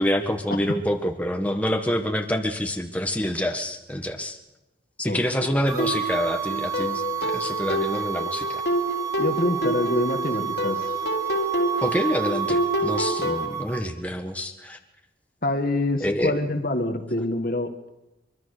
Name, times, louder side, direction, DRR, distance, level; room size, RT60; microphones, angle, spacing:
voice 1, 0.0-4.4 5.0-8.6 11.8-14.8 16.0-16.3, equal, 10° left, 4 dB, 1.5 m, -27 dB
sound 1, 5.7-13.8, right 9 dB, 20° right, 2.7 m, -30 dB
sound 2, 5.8-13.5, equal, 65° left, 3.2 m, -28 dB
voice 2, 9.2-10.9 15.4-17.9, left 1 dB, 50° left, 6 dB, 1.8 m, -26 dB
24.0 x 23.5 x 6.7 m, 0.97 s
head